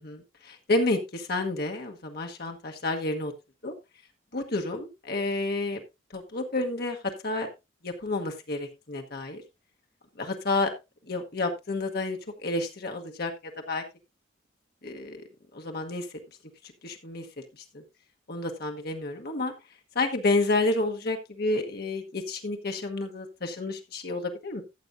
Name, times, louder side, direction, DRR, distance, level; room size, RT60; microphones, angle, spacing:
voice 1, 0.0-3.3 3.6-3.7 4.3-5.8 6.1-7.0 7.2-7.5 7.8-9.4 10.2-10.7 11.1-13.3 13.7-13.8 14.8-15.2 15.5-16.1 16.8-17.3 17.6-17.8 18.3-19.5 19.9-24.6, left 2 dB, 55° left, 3 dB, 1.2 m, -30 dB
14.0 x 7.8 x 2.6 m, 0.23 s
head